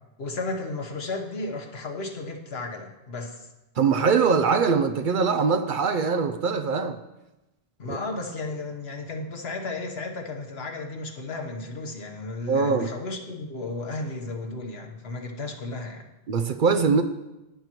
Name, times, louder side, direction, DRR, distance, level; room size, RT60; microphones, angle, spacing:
voice 1, 0.2-3.4 7.8-16.1, left 2 dB, 75° left, 1.4 m, -34 dB
voice 2, 3.8-7.0 7.9-8.0 12.5-12.9 16.3-17.0, right 5 dB, 60° right, 0.7 m, -22 dB
12.0 x 9.6 x 3.0 m
omnidirectional pair, 1.1 m